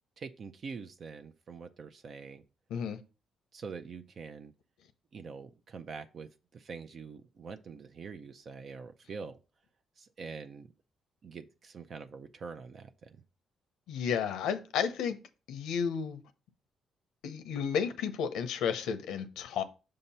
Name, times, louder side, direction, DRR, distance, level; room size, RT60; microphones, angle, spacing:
voice 1, 0.2-2.4 3.5-4.5 5.1-9.4 10.0-10.7 11.2-13.2, right 5 dB, 50° right, 0.5 m, -45 dB
voice 2, 13.9-15.2 15.5-16.2 17.2-19.6, left 7 dB, 85° left, 0.7 m, -32 dB
6.5 x 2.9 x 5.5 m
cardioid pair, 90°, 0 cm